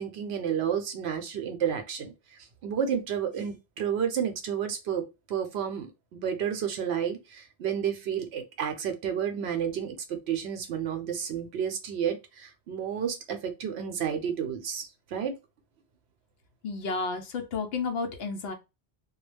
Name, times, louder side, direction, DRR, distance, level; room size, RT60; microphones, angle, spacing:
voice 1, 0.0-2.1 2.6-15.3, right 8 dB, 75° right, 7 dB, 0.8 m, -31 dB
voice 2, 16.6-18.5, left 4 dB, 70° left, 6 dB, 0.8 m, -31 dB
2.3 x 2.0 x 3.2 m, 0.25 s
omnidirectional pair, 1.1 m